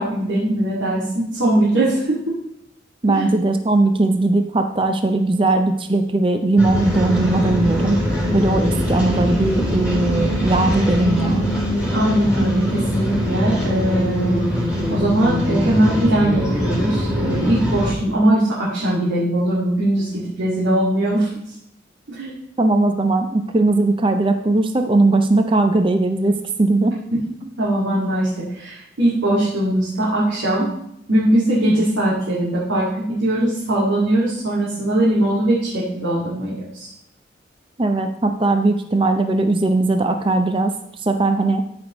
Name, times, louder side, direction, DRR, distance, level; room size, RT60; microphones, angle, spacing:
voice 1, 0.0-2.4 3.1-3.3 11.9-14.3 14.9-21.3 22.1-22.4 27.1-27.2 27.6-30.7 31.1-36.9, right 1 dB, 85° right, -8 dB, 2.1 m, -20 dB
voice 2, 3.0-8.0 8.3-11.5 22.6-26.9 37.8-40.7 41.0-41.6, right 2 dB, 25° right, 6 dB, 0.5 m, -19 dB
sound 1, 6.6-17.9, equal, 5° right, 3.5 m, -22 dB
13.0 x 5.1 x 3.0 m, 0.78 s
head